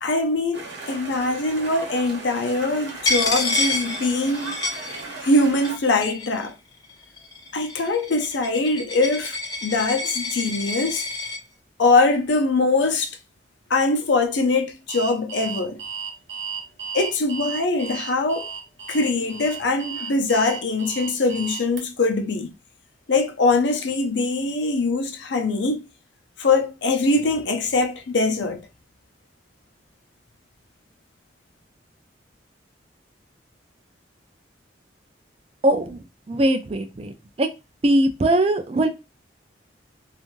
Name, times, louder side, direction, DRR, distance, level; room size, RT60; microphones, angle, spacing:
voice 1, 0.0-4.6 5.2-6.5 7.5-9.4 9.6-11.1 11.8-13.1 13.7-15.8 16.9-18.5 18.9-22.5 23.1-25.8 26.4-28.6, left 3 dB, 70° left, 0.5 m, -22 dB
sound 1, 0.5-5.8, right 3 dB, 65° right, 0.9 m, -37 dB
Coin (dropping), 3.0-5.4 5.6-6.5 7.2-11.4, left 2 dB, 20° left, 0.6 m, -28 dB
Alarm, 14.9-21.8, right 6 dB, 90° right, 0.8 m, -34 dB
voice 2, 35.6-37.5 37.8-38.9, right 1 dB, 30° right, 0.3 m, -21 dB
2.5 x 2.4 x 3.0 m
head